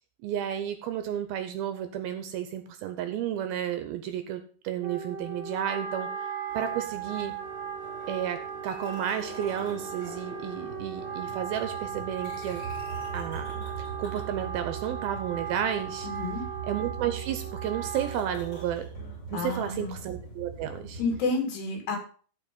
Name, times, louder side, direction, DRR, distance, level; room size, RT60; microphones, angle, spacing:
voice 1, 0.2-7.4 8.1-12.7 13.1-16.1 16.6-18.9 19.3-21.0, right 10 dB, 75° right, 9 dB, 2.4 m, -32 dB
Wind instrument woodwind instrument, 4.8-18.9, right 7 dB, 50° right, 1.2 m, -37 dB
sound 1, 6.5-21.2, right 4 dB, 40° left, 4.2 m, -42 dB
voice 2, 16.0-16.4 19.3-19.9 21.0-22.0, left 3 dB, 75° left, 2 dB, 4.6 m, -30 dB
13.5 x 4.8 x 5.3 m, 0.42 s
omnidirectional pair, 4.9 m